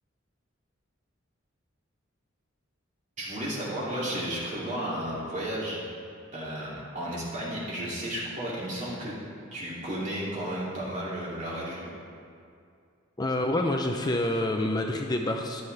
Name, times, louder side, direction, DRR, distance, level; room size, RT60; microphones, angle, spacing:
voice 1, 3.2-5.8 6.3-9.1 9.5-11.9, right 1 dB, 40° right, -6 dB, 2.8 m, -33 dB
voice 2, 13.2-15.6, left 1 dB, 20° left, 3 dB, 0.5 m, -27 dB
14.5 x 11.0 x 3.4 m, 2.4 s
head